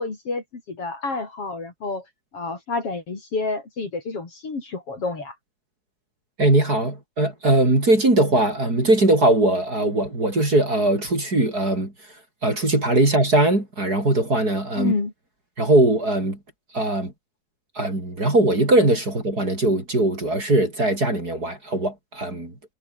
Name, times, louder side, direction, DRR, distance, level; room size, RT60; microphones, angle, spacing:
voice 1, 0.0-2.0 2.3-5.3 14.8-15.1, left 3 dB, 45° left, 5.0 m, -29 dB
voice 2, 6.4-12.2 12.4-14.9 15.6-16.4 16.7-17.1 17.7-22.5, right 2 dB, 25° right, 6.0 m, -20 dB
omnidirectional pair, 3.7 m